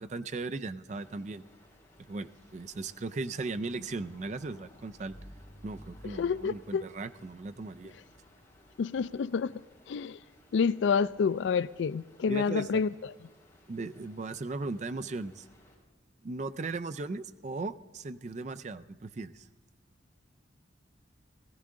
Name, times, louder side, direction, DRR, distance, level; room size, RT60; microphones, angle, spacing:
voice 1, 0.0-1.4 2.1-5.1 5.6-7.9 12.3-12.8 13.7-15.5 16.2-19.5, right 3 dB, 40° right, 0.4 m, -37 dB
Stream, 0.9-15.7, equal, 15° left, 4.2 m, -57 dB
voice 2, 6.2-6.9 8.8-9.5 9.9-10.2 10.5-12.9, left 5 dB, 75° left, 0.3 m, -28 dB
17.5 x 14.5 x 3.8 m
head